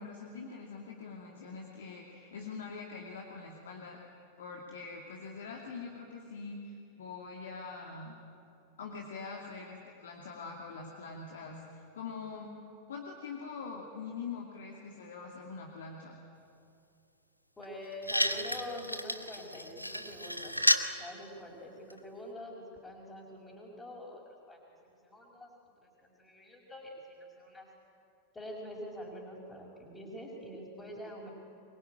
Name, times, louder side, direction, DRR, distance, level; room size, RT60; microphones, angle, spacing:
voice 1, 0.0-4.0 4.4-8.2 8.8-12.5 12.9-16.2, left 4 dB, 65° left, 0 dB, 2.6 m, -44 dB
sound 1, 17.6-17.7 18.0-20.9 21.9-22.0, equal, 90° left, 1.1 m, -31 dB
voice 2, 17.6-20.6 21.0-25.5 25.8-27.7 28.3-31.3, equal, 10° left, -5 dB, 5.0 m, -45 dB
24.5 x 22.0 x 9.3 m, 2.6 s
figure-of-eight pair, 90°, 0 cm